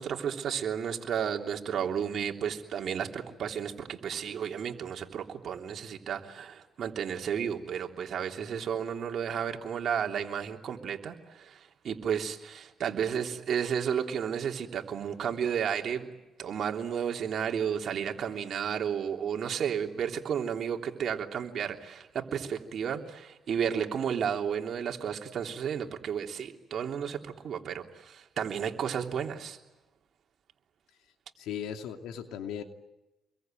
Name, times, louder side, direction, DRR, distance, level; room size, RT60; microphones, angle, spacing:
voice 1, 0.0-16.1 16.4-29.6, right 8 dB, 60° right, 3 dB, 3.2 m, -32 dB
voice 2, 31.4-32.6, left 9 dB, 90° left, 5 dB, 2.8 m, -37 dB
28.0 x 22.5 x 9.2 m, 0.99 s
cardioid pair, 90°, 0 cm